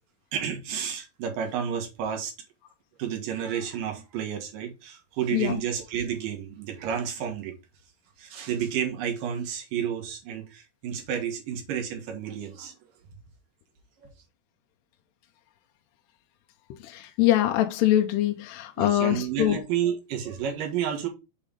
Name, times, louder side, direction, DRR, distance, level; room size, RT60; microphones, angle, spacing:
voice 1, 0.3-2.3 3.0-7.6 8.2-12.7 14.0-14.1 18.8-21.1, right 8 dB, 65° right, 2.7 m, -31 dB
voice 2, 16.8-19.6, left 13 dB, 80° left, 2.6 m, -23 dB
7.3 x 3.4 x 5.0 m
omnidirectional pair, 4.8 m